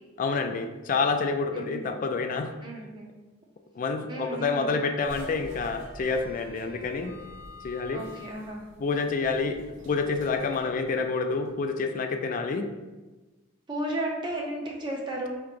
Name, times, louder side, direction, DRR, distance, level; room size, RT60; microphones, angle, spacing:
voice 1, 0.2-2.5 3.8-7.1 7.6-8.0 8.8-12.7, left 4 dB, 40° left, 6 dB, 0.3 m, -28 dB
voice 2, 1.5-1.9 2.6-3.1 4.1-4.7 7.9-8.6 13.7-15.4, right 1 dB, 25° right, -1 dB, 0.6 m, -34 dB
sound 1, 5.0-11.5, equal, 75° right, 0.8 m, -47 dB
4.6 x 2.9 x 2.5 m, 1.2 s
head